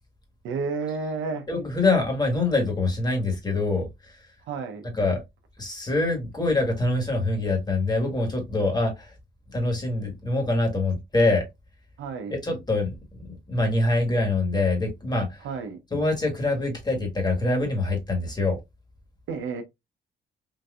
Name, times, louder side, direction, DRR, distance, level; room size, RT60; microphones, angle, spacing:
voice 1, 0.4-1.5 4.5-4.8 12.0-12.4 15.4-15.8 19.3-19.6, right 4 dB, 80° right, 0.7 m, -31 dB
voice 2, 1.5-4.1 4.9-5.2 5.6-9.1 9.5-11.4 12.4-15.4 15.9-18.6, left 2 dB, 20° left, 1.5 m, -25 dB
3.8 x 2.6 x 2.3 m
cardioid pair, 90°, 20 cm